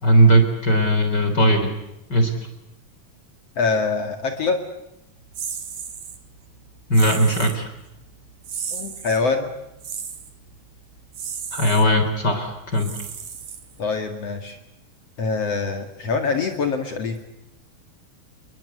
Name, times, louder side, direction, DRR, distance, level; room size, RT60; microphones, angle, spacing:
voice 1, 0.0-1.7 2.1-2.3 6.9-7.7 11.5-12.9, right 1 dB, 35° left, 6 dB, 4.2 m, -18 dB
voice 2, 3.6-4.6 8.7-9.5 13.8-14.6 15.2-17.2, left 4 dB, 55° left, 5 dB, 3.1 m, -24 dB
sound 1, 5.3-6.2 6.9-7.6 8.4-9.2 9.8-10.3 11.1-11.8 12.7-13.9, right 7 dB, 80° right, 4.1 m, -33 dB
29.5 x 22.0 x 8.2 m, 0.87 s
omnidirectional pair, 3.4 m